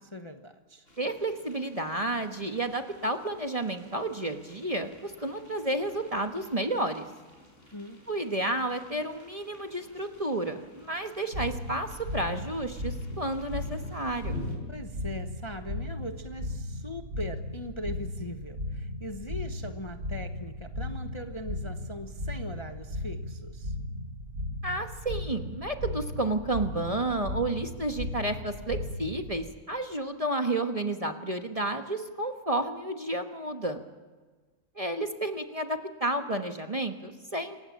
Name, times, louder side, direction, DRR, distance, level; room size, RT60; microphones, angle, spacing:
voice 1, 0.1-0.8 7.7-8.0 14.7-23.7, left 1 dB, 20° left, 6 dB, 0.9 m, -40 dB
sound 1, 0.9-14.6, left 1 dB, 40° left, 5.3 m, -49 dB
voice 2, 1.0-7.0 8.1-14.4 24.6-33.8 34.8-37.6, right 1 dB, 25° right, 5 dB, 1.2 m, -31 dB
sound 2, 11.3-29.4, left 1 dB, 70° right, 6.7 m, -36 dB
27.5 x 16.5 x 7.4 m, 1.4 s
omnidirectional pair, 1.6 m